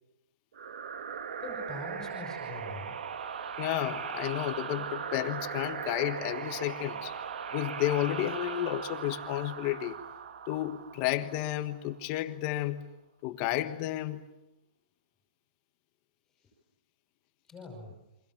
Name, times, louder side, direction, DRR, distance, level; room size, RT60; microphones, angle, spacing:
sound 1, 0.5-11.9, right 7 dB, 70° right, 2.0 m, -39 dB
voice 1, 1.4-3.0 17.5-17.9, left 2 dB, 10° left, 3 dB, 5.3 m, -42 dB
voice 2, 3.6-7.1 7.5-10.0 10.5-12.9 13.2-14.2, left 14 dB, 25° left, 10 dB, 1.4 m, -32 dB
29.5 x 25.0 x 7.4 m, 0.94 s
hypercardioid pair, 170°, 5 cm